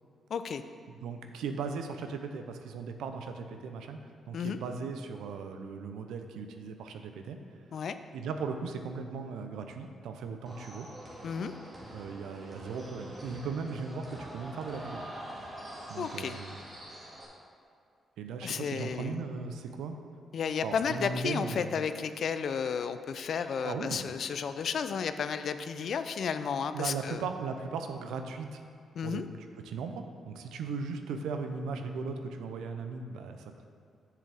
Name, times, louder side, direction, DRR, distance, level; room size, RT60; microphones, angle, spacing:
voice 1, 0.3-0.6 4.3-4.6 7.7-8.0 11.2-11.5 16.0-16.4 18.4-19.2 20.3-27.2 29.0-29.2, left 6 dB, 65° left, 10 dB, 0.4 m, -33 dB
voice 2, 0.9-4.0 4.3-7.4 8.1-10.9 11.9-15.1 15.9-16.6 18.2-20.0 20.6-21.7 23.6-24.0 26.7-28.6 29.0-29.2 29.6-33.6, right 5 dB, 85° right, 6 dB, 0.5 m, -37 dB
sound 1, 10.5-17.3, right 1 dB, 40° right, 1.9 m, -45 dB
7.6 x 7.2 x 3.4 m, 2.4 s
supercardioid pair, 65°, 0 cm